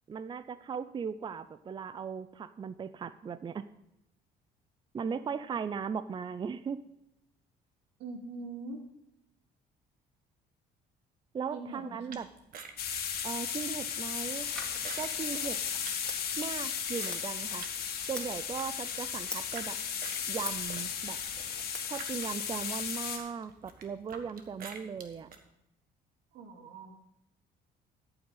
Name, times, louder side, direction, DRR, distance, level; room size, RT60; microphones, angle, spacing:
voice 1, 0.1-3.7 4.9-6.8 11.3-12.3 13.2-14.5 15.0-15.6 16.4-17.7 18.1-19.8 20.3-21.2 21.9-25.3, right 6 dB, 30° right, 14 dB, 0.5 m, -38 dB
voice 2, 8.0-8.8 11.5-12.2 26.3-26.9, right 3 dB, 90° right, 3 dB, 2.3 m, -43 dB
sound 1, 12.1-17.8 18.1-19.7 20.0-25.4, right 5 dB, 60° right, 1.5 m, -48 dB
sound 2, 12.8-23.2, left 8 dB, 65° left, 2.0 m, -35 dB
Scissors, 14.4-22.4, left 1 dB, 5° left, 2.6 m, -47 dB
13.5 x 8.7 x 4.0 m, 0.84 s
cardioid pair, 110°, 17 cm